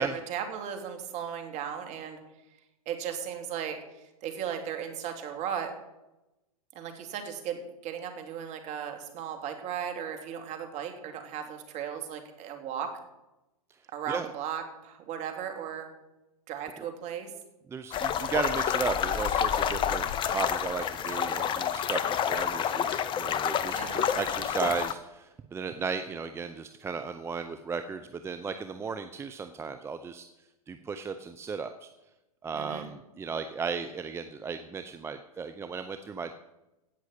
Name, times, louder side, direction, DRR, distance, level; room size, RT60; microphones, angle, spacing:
voice 1, 0.0-2.2 2.9-5.7 6.7-12.9 13.9-15.9 16.5-17.3 23.7-24.0 32.5-32.9, right 8 dB, 35° right, 5 dB, 2.8 m, -36 dB
voice 2, 17.7-30.2 30.7-31.9 32.4-36.3, right 5 dB, 15° right, 8 dB, 0.7 m, -35 dB
sound 1, 17.9-24.9, left 8 dB, 25° left, 0.9 m, -29 dB
16.5 x 6.2 x 8.5 m, 0.97 s
hypercardioid pair, 115°, 19 cm